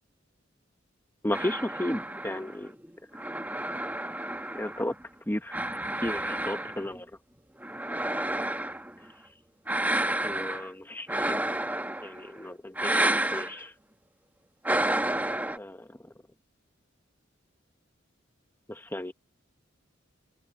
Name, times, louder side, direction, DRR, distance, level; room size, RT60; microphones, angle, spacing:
voice 1, 1.2-2.8 4.5-4.9 5.3-5.6 6.0-7.1 10.2-11.4 12.0-13.7 15.6-15.9 18.7-19.1, left 1 dB, 10° left, 1.1 m, -34 dB
sound 1, 1.3-5.0 5.5-7.0 7.6-8.9 9.7-10.7 11.1-12.3 12.8-13.5 14.7-15.6, right 1 dB, 10° right, 1.4 m, -30 dB
open air
head